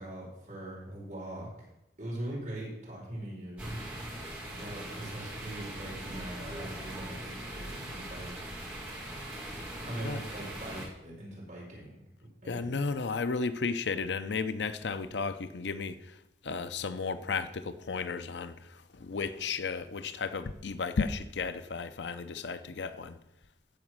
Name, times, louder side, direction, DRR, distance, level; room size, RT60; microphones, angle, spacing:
voice 1, 0.0-1.5 2.0-3.8 4.5-8.3 9.8-12.0 12.4-12.7, right 1 dB, 45° right, 4.9 m, -41 dB
sound 1, 3.6-10.9, right 1 dB, 10° right, 3.6 m, -41 dB
voice 2, 12.5-16.2 16.4-23.2, left 4 dB, 80° left, 0.6 m, -34 dB
14.5 x 5.0 x 6.3 m
head